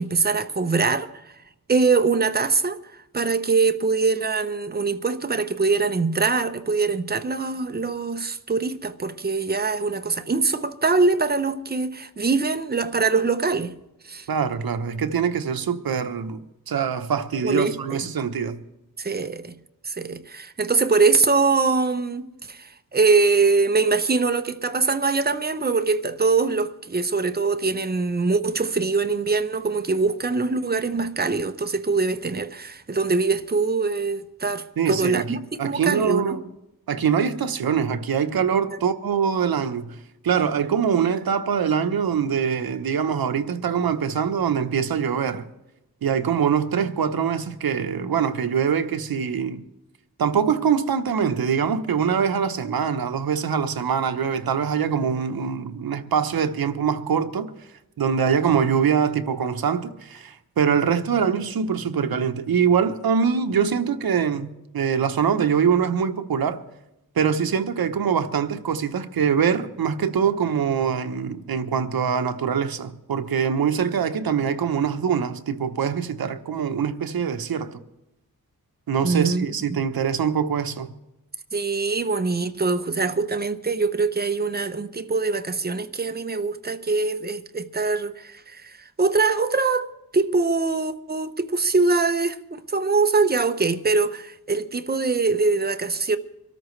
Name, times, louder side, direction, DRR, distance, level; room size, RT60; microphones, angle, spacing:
voice 1, 0.0-1.3 1.7-2.8 3.1-13.7 14.0-14.3 17.4-18.1 19.0-19.5 19.8-22.2 22.5-36.4 38.7-38.8 79.0-79.8 81.5-96.2, right 4 dB, 25° right, 0.8 m, -23 dB
voice 2, 14.3-16.4 16.7-18.6 34.8-36.4 36.9-40.0 40.2-45.4 46.0-49.6 50.2-57.5 58.0-64.5 64.7-66.6 67.2-77.8 78.9-80.9, right 7 dB, 70° right, 1.0 m, -23 dB
24.5 x 13.5 x 3.2 m
wide cardioid pair, 115°, 37 cm